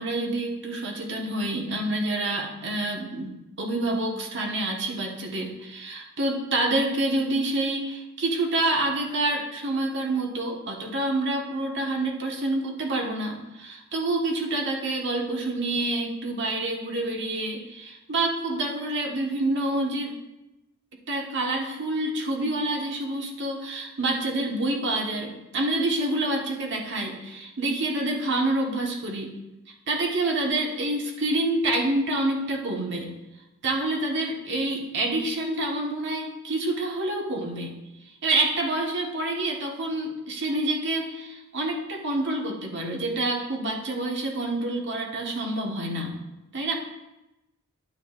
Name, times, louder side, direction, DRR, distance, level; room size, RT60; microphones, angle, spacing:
voice 1, 0.0-20.1 21.1-29.3 29.9-33.1 33.6-37.7 38.2-46.2 46.5-46.7, right 2 dB, 55° right, 0 dB, 1.5 m, -27 dB
10.5 x 9.3 x 2.5 m, 0.97 s
head